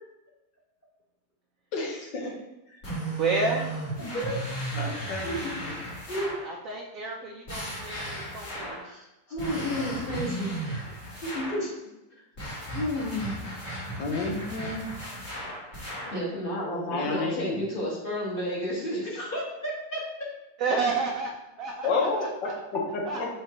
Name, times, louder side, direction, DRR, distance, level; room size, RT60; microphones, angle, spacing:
voice 1, 1.7-2.3 4.0-4.2 4.7-5.8 14.0-14.8 16.9-17.7 21.8-22.5 22.9-23.3, left 3 dB, 80° left, 0 dB, 1.7 m, -30 dB
sound 1, 2.8-6.5 7.5-8.9 9.4-11.7 12.4-16.2, right 1 dB, 50° left, 2.6 m, -35 dB
voice 2, 3.1-3.9 6.4-9.0 11.1-11.2 20.6-21.3 21.6-22.5 23.0-23.2, right 3 dB, 60° right, -1 dB, 0.9 m, -31 dB
voice 3, 4.9-6.3 8.8-9.0 9.3-10.9 11.2-11.8 12.7-13.4 16.1-20.0, equal, 30° left, -5 dB, 1.6 m, -32 dB
5.8 x 5.5 x 2.9 m, 0.95 s
omnidirectional pair, 1.9 m